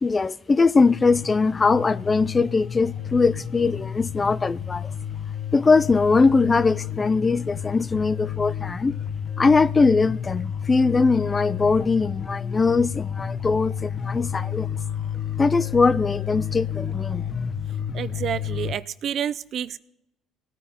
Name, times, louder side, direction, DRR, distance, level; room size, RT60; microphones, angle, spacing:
voice 1, 0.0-4.9 5.5-9.0 9.4-14.7 15.4-17.2, left 4 dB, 25° left, 0.3 m, -21 dB
sound 1, 0.9-18.8, left 8 dB, 40° left, 0.9 m, -31 dB
voice 2, 17.9-19.8, right 9 dB, 55° right, 0.4 m, -29 dB
18.5 x 9.6 x 2.9 m
supercardioid pair, 90°, 0 cm